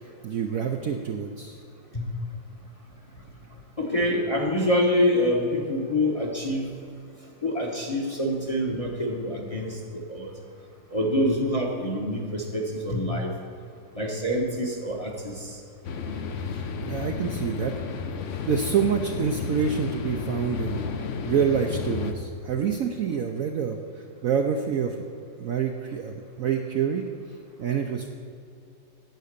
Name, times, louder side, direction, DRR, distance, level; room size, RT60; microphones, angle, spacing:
voice 1, 0.2-1.6 16.8-17.7 18.4-20.8 21.3-23.8 24.2-25.0 25.4-27.0 27.6-28.1, right 7 dB, 65° right, 4 dB, 0.8 m, -27 dB
voice 2, 3.8-6.7 7.4-10.3 10.9-13.3 13.9-15.6, left 1 dB, 25° left, 0 dB, 0.9 m, -26 dB
sound 1, 15.8-22.1, left 5 dB, 60° left, 0.8 m, -32 dB
9.3 x 8.3 x 6.6 m, 2.5 s
omnidirectional pair, 2.0 m